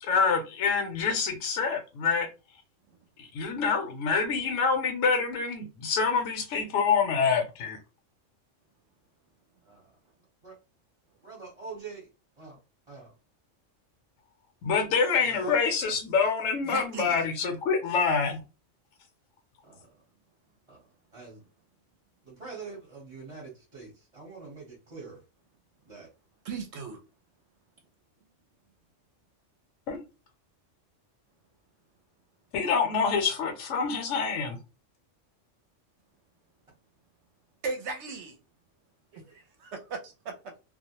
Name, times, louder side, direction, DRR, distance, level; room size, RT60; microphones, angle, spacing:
voice 1, 0.0-2.3 3.2-7.8 14.6-18.4 29.9-30.0 32.5-34.6, left 5 dB, 75° left, 0.9 m, -26 dB
voice 2, 11.2-12.1 12.4-12.6 12.9-13.1 15.2-15.5 19.7-19.8 20.7-20.8 21.1-21.4 22.2-25.2 25.9-26.1 33.1-33.4 39.1-39.3, right 4 dB, 35° right, 0.9 m, -45 dB
voice 3, 16.6-17.2 26.4-27.0 37.6-38.4 39.3-40.3, right 4 dB, 70° right, 0.8 m, -37 dB
2.3 x 2.0 x 2.8 m
omnidirectional pair, 1.3 m